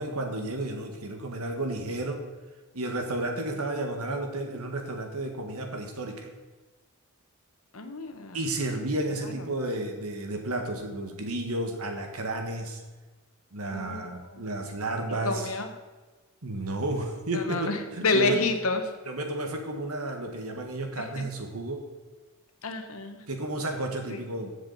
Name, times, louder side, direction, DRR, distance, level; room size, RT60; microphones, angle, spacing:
voice 1, 0.0-2.2 2.7-6.3 8.3-12.8 13.5-15.5 16.4-18.4 19.0-21.8 23.3-24.5, right 2 dB, 80° right, 4 dB, 1.7 m, -32 dB
voice 2, 7.7-8.4 13.7-14.4 15.2-15.7 17.3-18.8 21.0-21.2 22.6-23.2 24.1-24.2, left 3 dB, 70° left, 6 dB, 1.3 m, -29 dB
14.5 x 7.4 x 4.2 m, 1.3 s
head